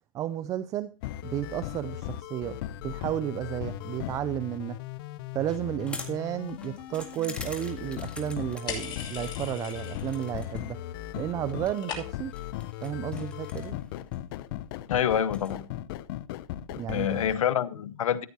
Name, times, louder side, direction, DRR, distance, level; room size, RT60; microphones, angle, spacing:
voice 1, 0.1-0.9 1.2-2.6 2.8-4.8 5.3-10.8 11.2-12.3 12.8-13.8 16.7-17.2, right 12 dB, 20° right, 0.4 m, -32 dB
sound 1, 1.0-17.4, left 13 dB, 40° left, 0.6 m, -38 dB
sound 2, 5.3-15.5, left 2 dB, 5° left, 1.8 m, -47 dB
sound 3, 8.7-10.3 10.6-11.1 11.3-12.4, left 6 dB, 25° left, 2.8 m, -39 dB
voice 2, 14.9-15.7 16.9-18.3, left 9 dB, 70° left, 1.0 m, -27 dB
14.0 x 9.2 x 2.8 m
hypercardioid pair, 135°, 18 cm